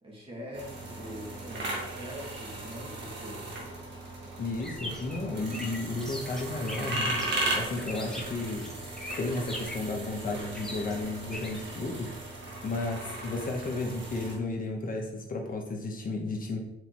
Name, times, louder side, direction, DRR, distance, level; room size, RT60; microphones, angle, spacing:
voice 1, 0.0-3.7 4.5-4.6, equal, 25° right, -3 dB, 2.3 m, -43 dB
sound 1, 0.5-14.4, right 2 dB, 65° right, 1.8 m, -37 dB
voice 2, 4.4-7.1 7.6-8.6 9.2-12.3 12.6-16.6, left 2 dB, 45° left, 1 dB, 1.1 m, -33 dB
sound 2, 4.6-11.6, left 1 dB, 5° left, 1.2 m, -41 dB
8.0 x 4.1 x 3.1 m, 0.87 s
cardioid pair, 90°, 20 cm